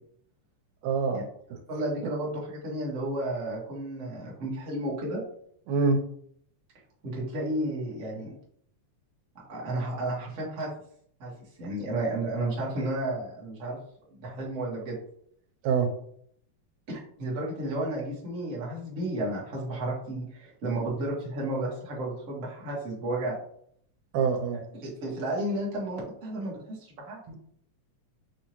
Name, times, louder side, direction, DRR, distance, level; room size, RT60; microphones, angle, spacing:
voice 1, 0.8-1.2 5.7-6.0 15.6-15.9 24.1-24.6 27.3-27.4, right 5 dB, 85° right, 5 dB, 2.2 m, -25 dB
voice 2, 1.7-5.2 7.0-8.3 9.3-10.7 11.2-11.3 11.6-13.8 14.1-15.0 16.9-23.4 24.5-27.2, right 1 dB, 45° right, -5 dB, 1.1 m, -32 dB
6.0 x 2.7 x 3.0 m, 0.65 s
omnidirectional pair, 3.5 m